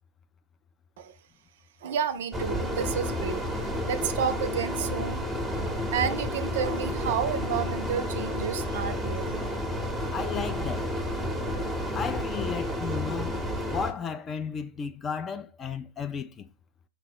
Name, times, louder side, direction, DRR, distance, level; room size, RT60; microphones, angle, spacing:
voice 1, 1.8-5.3 5.6-9.4 10.0-10.1, right 7 dB, 55° right, 0.5 m, -31 dB
sound 1, 2.3-13.9, equal, 5° right, 0.8 m, -31 dB
voice 2, 10.1-10.9 11.9-13.4 13.7-16.5, left 6 dB, 20° left, 0.3 m, -34 dB
5.2 x 2.0 x 4.3 m
figure-of-eight pair, 105°, 0 cm